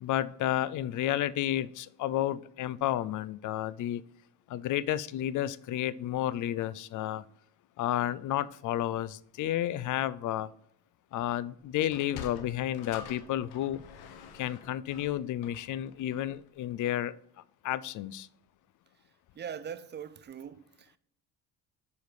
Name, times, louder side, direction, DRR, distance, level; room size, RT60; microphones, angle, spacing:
voice 1, 0.0-4.0 4.5-7.2 7.8-10.5 11.1-13.8 14.3-17.1 17.6-18.3, left 12 dB, 55° left, 0.4 m, -31 dB
Sliding door, 11.8-16.4, left 7 dB, 80° left, 1.0 m, -47 dB
voice 2, 19.4-21.0, right 8 dB, 30° right, 0.4 m, -41 dB
6.6 x 5.0 x 4.8 m
cardioid pair, 105°, 37 cm